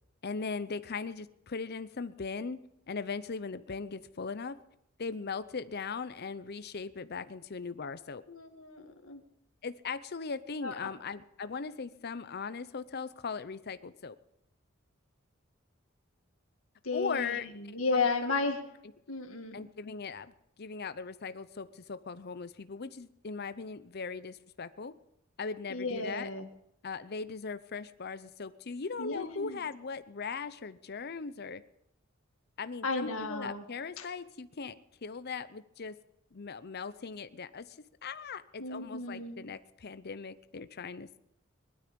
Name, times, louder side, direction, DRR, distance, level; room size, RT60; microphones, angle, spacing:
voice 1, 0.2-2.6 2.9-4.6 5.0-8.2 9.6-14.2 16.9-17.5 17.9-18.1 19.5-24.9 25.4-26.3 26.8-31.6 32.6-34.8 35.0-36.0 36.3-41.1, left 5 dB, 50° left, 13 dB, 0.7 m, -39 dB
voice 2, 8.3-9.2 10.6-10.7 16.8-18.6 19.1-19.6 25.7-26.5 29.0-29.6 32.8-33.6 34.0-34.1 38.6-39.4, left 3 dB, 85° left, 5 dB, 2.1 m, -33 dB
20.0 x 12.5 x 5.3 m, 0.80 s
head